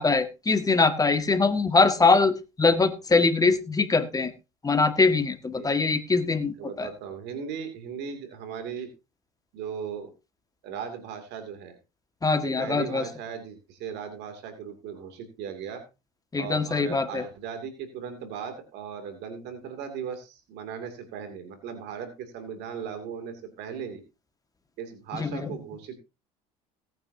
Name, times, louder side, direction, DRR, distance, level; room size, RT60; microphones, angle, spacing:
voice 1, 0.0-4.3 4.6-6.9 12.2-13.1 16.3-17.2 25.1-25.5, left 4 dB, 20° left, 9 dB, 1.8 m, -23 dB
voice 2, 6.6-8.9 9.5-10.1 10.6-11.8 12.4-15.8 16.4-24.0 24.8-26.0, right 7 dB, 65° right, 7 dB, 2.7 m, -37 dB
18.0 x 9.2 x 2.8 m, 0.27 s
supercardioid pair, 85°, 19 cm